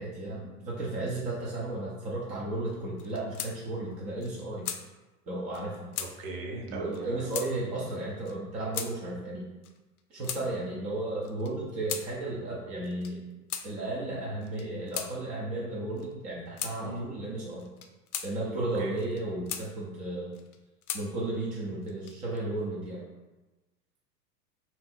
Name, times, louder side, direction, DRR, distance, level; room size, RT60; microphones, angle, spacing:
voice 1, 0.0-4.7 5.3-5.9 6.7-9.4 10.1-13.2 13.6-17.7 18.2-20.3 20.9-23.0, right 2 dB, 15° right, -5 dB, 0.4 m, -34 dB
sound 1, 3.0-3.5 3.9-4.0 4.2-4.8 5.5-5.6 5.9-6.1 6.9-7.0 7.3-7.5 8.2-8.4 8.7-8.9 9.6-10.4 11.2-12.1 12.8-13.1 13.5-13.7 14.4-15.1 16.0-16.1 16.6-16.8 17.6-18.3 19.0-19.7 20.3-21.0 21.8-22.4, left 8 dB, 70° left, 0.6 m, -37 dB
voice 2, 6.0-7.2 16.8-17.1 18.8-19.0, right 2 dB, 35° right, 2 dB, 0.8 m, -38 dB
3.4 x 2.8 x 4.1 m, 1.1 s
figure-of-eight pair, 90°, 47 cm